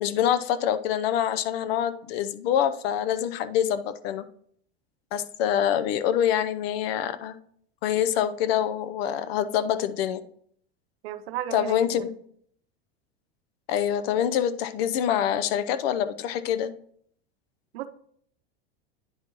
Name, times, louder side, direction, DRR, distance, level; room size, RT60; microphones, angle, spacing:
voice 1, 0.0-4.2 5.1-7.4 7.8-10.2 11.5-12.1 13.7-16.7, left 10 dB, 70° left, 13 dB, 0.7 m, -25 dB
voice 2, 11.0-12.0 17.7-17.9, right 12 dB, 75° right, 11 dB, 0.7 m, -34 dB
9.7 x 5.2 x 2.9 m, 0.63 s
supercardioid pair, 120°, 31 cm